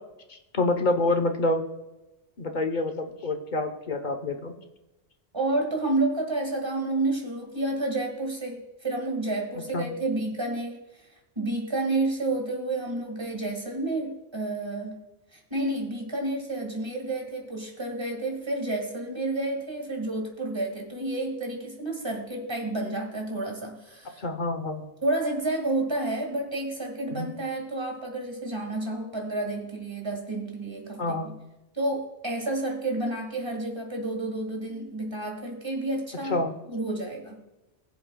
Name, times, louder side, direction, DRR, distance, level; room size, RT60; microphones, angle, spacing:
voice 1, 0.3-1.6 2.4-4.6 9.7-9.9 24.2-24.8 27.1-27.3 31.0-31.3 36.3-36.5, left 2 dB, 45° left, 5 dB, 1.0 m, -27 dB
voice 2, 5.3-11.0 11.4-15.0 15.3-24.2 25.0-31.4 31.7-36.4 36.7-37.4, right 2 dB, 25° right, 1 dB, 2.0 m, -30 dB
19.5 x 7.7 x 2.3 m, 1.0 s
omnidirectional pair, 1.1 m